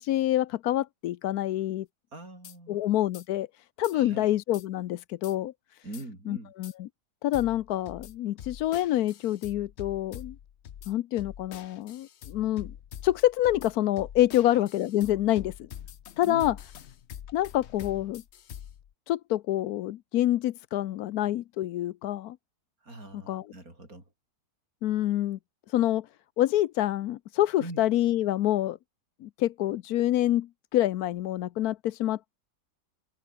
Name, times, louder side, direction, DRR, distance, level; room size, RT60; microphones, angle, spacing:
voice 1, 0.0-1.9 2.7-5.5 6.3-6.9 7.2-10.4 10.9-12.7 13.0-15.7 16.2-16.5 17.3-18.2 19.1-22.4 23.3-23.4 24.8-25.4 25.7-26.1 26.4-28.8 29.2-32.4, left 13 dB, 75° left, 1.1 m, -27 dB
voice 2, 2.1-2.8 3.9-4.3 5.8-6.5 14.4-14.6 16.2-16.6 22.8-24.1 27.6-27.9, right 2 dB, 65° right, 7.6 m, -43 dB
sound 1, 2.4-2.6 3.1-3.3 3.8-4.0 4.5-4.6 5.2-5.3 5.9-6.0 6.6-6.7 7.3-18.9, left 9 dB, 55° left, 0.9 m, -45 dB
omnidirectional pair, 1.7 m